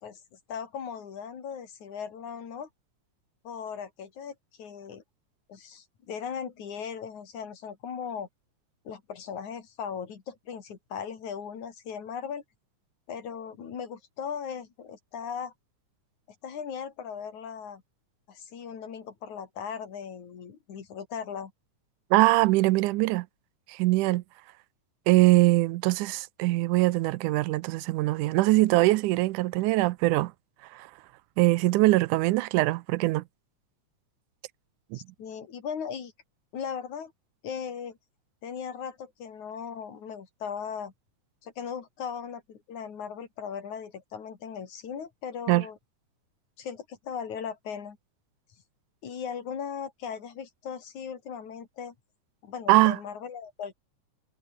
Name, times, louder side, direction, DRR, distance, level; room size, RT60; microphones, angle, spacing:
voice 1, 0.0-2.7 3.4-5.0 5.5-8.3 8.8-12.4 13.1-15.5 16.4-17.8 18.3-21.5 34.9-36.1 36.5-37.1 37.4-38.0 38.4-40.9 41.4-45.8 46.6-48.0 49.0-51.9 52.4-53.7, left 7 dB, 70° left, 4.3 m, -38 dB
voice 2, 22.1-23.3 23.7-24.2 25.1-30.3 30.7-30.9 31.4-33.2 34.9-35.0 45.5-45.6 52.7-53.0, right 19 dB, 85° right, 2.2 m, -22 dB
omnidirectional pair, 3.5 m